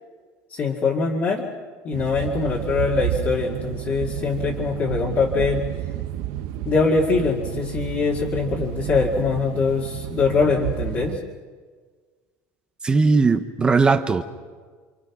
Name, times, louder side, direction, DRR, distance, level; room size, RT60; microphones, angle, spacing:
voice 1, 0.5-1.5 1.8-5.6 6.7-11.2, left 4 dB, 35° left, 2.3 m, -23 dB
sound 1, 1.9-11.2, right 13 dB, 70° right, 1.0 m, -31 dB
voice 2, 12.8-14.2, right 4 dB, 15° right, 0.8 m, -18 dB
28.5 x 26.5 x 6.0 m
cardioid pair, 180°, 7 cm